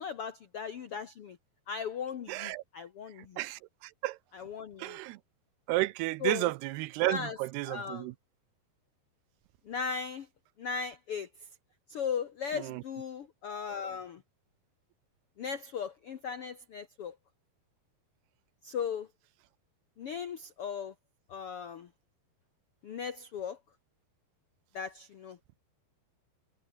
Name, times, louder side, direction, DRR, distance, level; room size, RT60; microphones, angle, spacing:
voice 1, 0.0-1.4 1.7-3.4 4.3-5.0 6.2-6.5 7.1-7.4 7.6-8.1 9.6-10.3 10.6-11.3 11.9-14.2 15.4-17.1 18.6-19.1 20.0-20.9 21.3-21.9 22.8-23.6 24.7-25.4, left 6 dB, 75° left, 1.3 m, -37 dB
voice 2, 2.3-2.6 3.4-4.2 4.8-5.2 5.7-8.1 12.5-12.8 13.6-13.7, right 19 dB, 85° right, 2.7 m, -32 dB
omnidirectional pair, 4.7 m